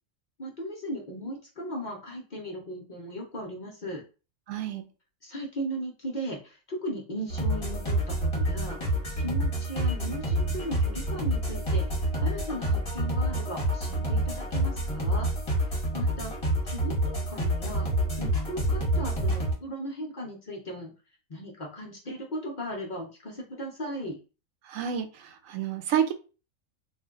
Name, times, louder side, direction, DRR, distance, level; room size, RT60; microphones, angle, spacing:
voice 1, 0.4-4.0 5.2-15.3 15.7-16.3 16.6-17.9 18.2-20.9 21.3-24.2, equal, 45° left, -1 dB, 0.6 m, -37 dB
voice 2, 4.5-4.8 24.7-26.1, right 9 dB, 75° right, 7 dB, 0.9 m, -29 dB
sound 1, 7.3-19.5, right 1 dB, 30° left, 1.0 m, -28 dB
2.5 x 2.2 x 3.6 m, 0.34 s
omnidirectional pair, 1.4 m